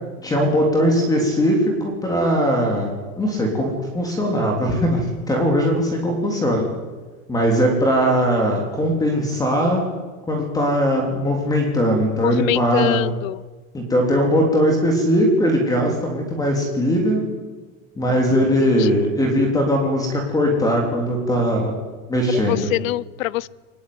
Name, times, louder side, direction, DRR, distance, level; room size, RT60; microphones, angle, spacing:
voice 1, 0.2-1.6 2.0-2.9 3.2-3.7 3.9-6.6 7.3-9.8 10.3-13.0 13.7-17.2 18.0-21.7 22.1-22.7, equal, 10° left, 1 dB, 3.5 m, -20 dB
voice 2, 12.2-13.4 18.8-19.1 22.3-23.5, left 16 dB, 65° left, 23 dB, 0.8 m, -24 dB
23.5 x 20.5 x 9.7 m, 1.3 s
supercardioid pair, 165°, 43 cm